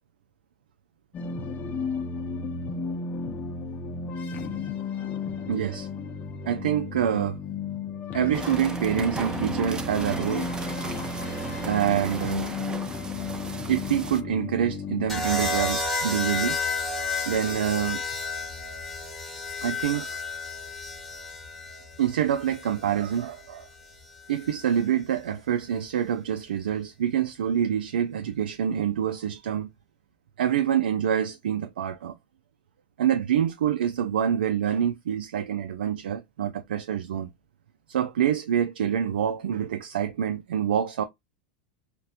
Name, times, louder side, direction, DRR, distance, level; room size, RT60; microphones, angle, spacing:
sound 1, 1.1-15.1, left 4 dB, 35° left, 0.6 m, -33 dB
voice 1, 5.5-5.9 6.5-7.4 8.1-10.5 11.6-12.5 13.7-16.6 17.3-18.0 19.6-20.2 22.0-23.7 24.3-29.7 30.4-32.2 33.0-37.3 37.9-41.0, right 9 dB, 90° right, 0.3 m, -26 dB
sound 2, 8.3-14.2, right 4 dB, 15° right, 0.4 m, -36 dB
sound 3, 15.1-23.2 24.4-24.8, left 3 dB, 5° left, 1.1 m, -31 dB
4.1 x 2.1 x 2.4 m
hypercardioid pair, 110°, 5 cm